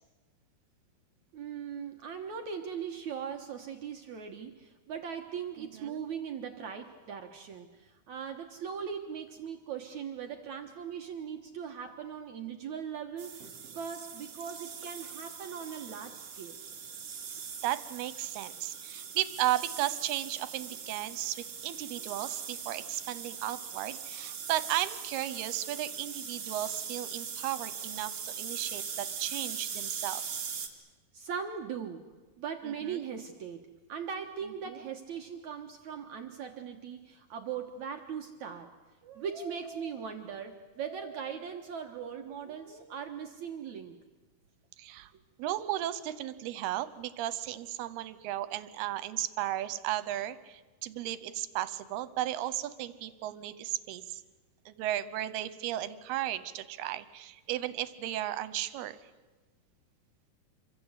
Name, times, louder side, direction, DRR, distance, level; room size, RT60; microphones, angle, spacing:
voice 1, 1.3-16.6 31.1-32.1 32.4-38.7 39.0-44.0, right 7 dB, 60° right, 4 dB, 2.2 m, -39 dB
voice 2, 5.6-6.0 17.6-30.2 32.6-33.0 34.4-34.8 44.8-45.1 45.4-54.2 54.7-59.0, right 13 dB, 85° right, 15 dB, 2.9 m, -35 dB
sound 1, 13.2-30.7, right 7 dB, 45° right, 3.1 m, -41 dB
27.0 x 24.0 x 8.2 m, 1.2 s
omnidirectional pair, 4.5 m